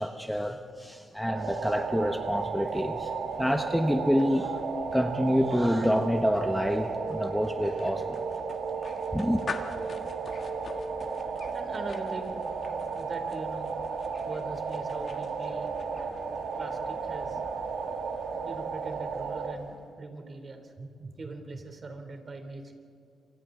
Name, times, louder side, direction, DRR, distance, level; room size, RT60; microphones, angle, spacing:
voice 1, 0.0-3.1 3.4-4.6 4.9-8.2 9.1-9.4, equal, ahead, 6 dB, 1.2 m, -27 dB
sound 1, 1.3-19.6, right 5 dB, 75° right, 1.9 m, -34 dB
sound 2, 1.4-20.0, left 4 dB, 55° left, 1.6 m, -46 dB
voice 2, 11.5-12.4 12.9-13.7 14.2-15.7 16.6-17.4 18.4-22.7, right 3 dB, 45° right, 5 dB, 3.2 m, -41 dB
28.0 x 24.5 x 3.9 m, 2.4 s
cardioid pair, 75°, 0 cm